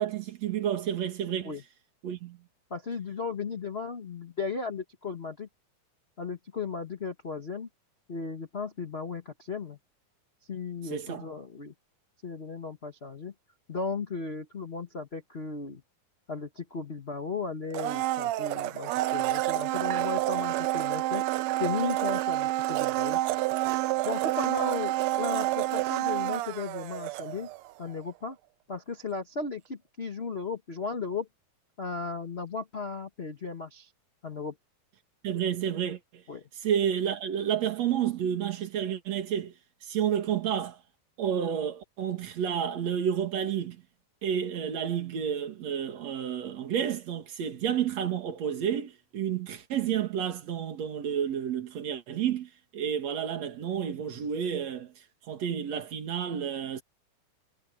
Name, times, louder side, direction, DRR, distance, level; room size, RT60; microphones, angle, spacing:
voice 1, 0.0-1.5 2.0-2.4 10.9-11.3 35.2-36.2 36.6-39.5 39.8-40.8 41.2-43.8 44.2-54.9 55.3-56.8, right 9 dB, 55° right, 3.2 m, -30 dB
voice 2, 2.7-5.5 6.2-7.7 8.1-9.8 10.5-11.7 12.2-13.3 13.7-15.8 16.3-21.2 21.6-23.2 24.0-27.5 27.8-28.4 28.7-31.3 31.8-33.9 34.2-34.5 36.3-36.4, left 4 dB, 40° left, 0.8 m, -35 dB
Domestic sounds home sounds, 17.7-27.7 28.0-28.1, right 16 dB, 80° right, 1.6 m, -29 dB
omnidirectional pair, 3.7 m